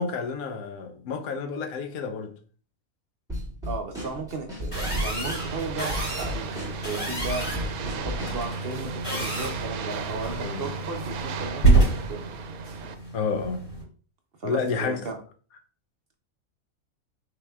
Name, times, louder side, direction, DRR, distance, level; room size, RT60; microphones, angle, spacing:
voice 1, 0.0-2.3 10.4-10.7 13.1-13.6 14.4-15.1, left 5 dB, 85° left, 1.2 m, -30 dB
Drum kit / Snare drum, 3.3-8.5, left 1 dB, 5° right, 1.9 m, -35 dB
voice 2, 3.6-7.7 8.0-12.3 14.4-15.2, right 3 dB, 55° right, 0.8 m, -35 dB
sound 1, 4.7-13.8, right 3 dB, 45° left, 2.6 m, -28 dB
sound 2, 4.7-12.9, right 8 dB, 90° right, 1.1 m, -37 dB
5.7 x 4.0 x 2.3 m
omnidirectional pair, 1.5 m